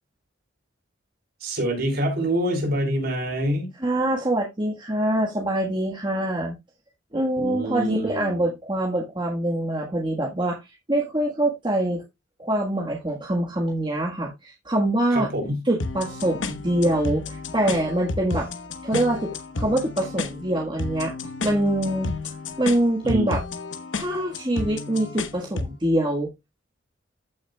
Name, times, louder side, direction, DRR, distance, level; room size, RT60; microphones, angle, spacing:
voice 1, 1.4-3.7 7.4-8.5 15.1-15.7 23.0-23.3, equal, 55° right, 3.8 m, -26 dB
voice 2, 3.8-6.6 7.1-12.0 12.4-15.3 15.7-18.5 18.8-21.1 21.4-22.1 22.6-23.4 23.9-26.3, right 1 dB, 25° right, 1.4 m, -24 dB
sound 1, 15.8-25.8, left 3 dB, 75° left, 1.1 m, -32 dB
14.5 x 6.2 x 2.2 m
head